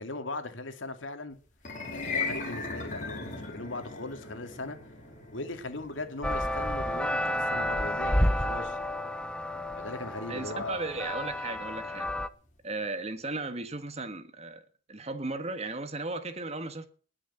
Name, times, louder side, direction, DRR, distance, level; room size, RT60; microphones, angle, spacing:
voice 1, 0.0-1.4 1.9-4.8 5.3-8.8 9.8-10.9, left 2 dB, 80° left, 2.5 m, -39 dB
sound 1, 1.5-11.9, left 4 dB, 40° left, 4.7 m, -40 dB
sound 2, 6.2-12.3, left 1 dB, 5° left, 0.8 m, -30 dB
voice 2, 10.3-12.1 12.6-14.6 14.9-16.9, right 3 dB, 35° right, 1.6 m, -35 dB
20.0 x 6.8 x 8.1 m
head